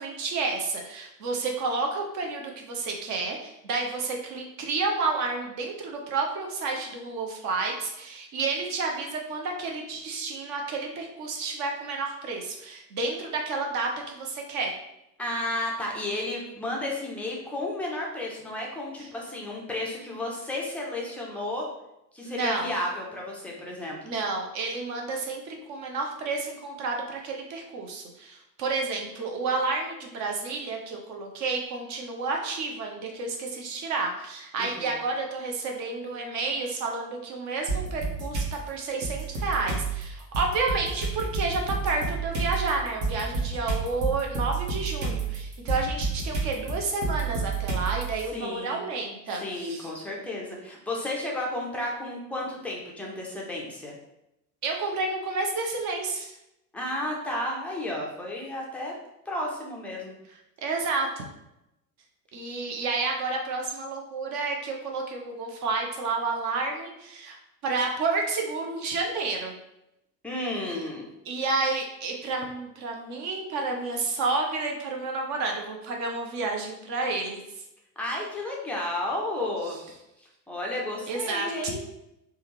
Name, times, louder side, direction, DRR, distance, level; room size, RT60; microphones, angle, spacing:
voice 1, 0.0-14.7 19.0-19.1 22.2-22.7 24.0-49.9 54.6-56.3 60.6-61.3 62.3-67.4 67.6-69.5 71.3-77.4 81.1-81.7, right 3 dB, 35° right, 1 dB, 0.7 m, -30 dB
voice 2, 15.2-21.7 22.1-24.0 34.6-35.0 48.3-48.8 49.4-53.9 56.7-58.9 59.3-60.1 70.2-71.1 78.0-79.8 80.5-81.8, left 1 dB, 5° left, -3 dB, 0.4 m, -32 dB
sound 1, 37.7-38.5 39.0-48.2, right 4 dB, 55° right, 1.0 m, -30 dB
3.3 x 2.2 x 3.1 m, 0.87 s
figure-of-eight pair, 70°, 49 cm